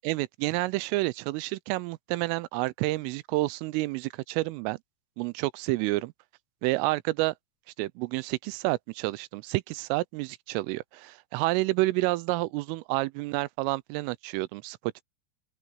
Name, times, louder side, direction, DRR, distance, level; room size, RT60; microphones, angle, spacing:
voice 1, 0.0-4.8 5.2-6.1 6.6-7.3 7.8-15.0, right 20 dB, 90° right, 3.2 m, -29 dB
open air
omnidirectional pair, 5.7 m